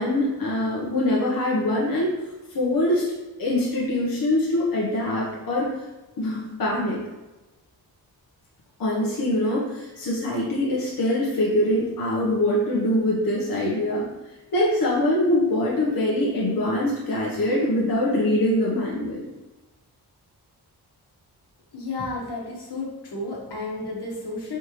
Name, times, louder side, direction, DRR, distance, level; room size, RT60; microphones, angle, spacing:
voice 1, 0.0-2.1 2.5-3.1 3.4-5.7 6.2-7.0 8.8-14.1 14.5-19.2, left 1 dB, 60° left, -5 dB, 0.9 m, -23 dB
voice 2, 21.7-24.6, left 2 dB, 80° left, -3 dB, 1.3 m, -32 dB
4.5 x 3.5 x 3.0 m, 1.1 s
wide cardioid pair, 135°, 39 cm